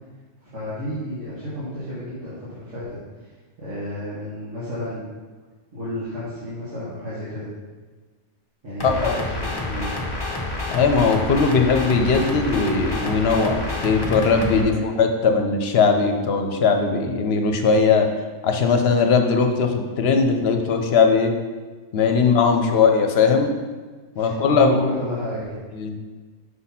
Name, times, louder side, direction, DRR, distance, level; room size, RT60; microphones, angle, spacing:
voice 1, 0.4-2.8 3.6-5.0 5.7-7.5 8.6-9.9 14.6-14.9 22.5-22.8 24.2-25.6, left 1 dB, 80° right, -11 dB, 1.9 m, -31 dB
voice 2, 8.8-9.1 10.7-18.1 18.4-21.3 21.9-23.5 24.2-24.8 25.7-25.9, left 5 dB, 60° left, 5 dB, 0.9 m, -19 dB
sound 1, 8.8-14.6, left 2 dB, 25° left, 0.7 m, -28 dB
5.5 x 4.1 x 5.6 m, 1.4 s
omnidirectional pair, 1.2 m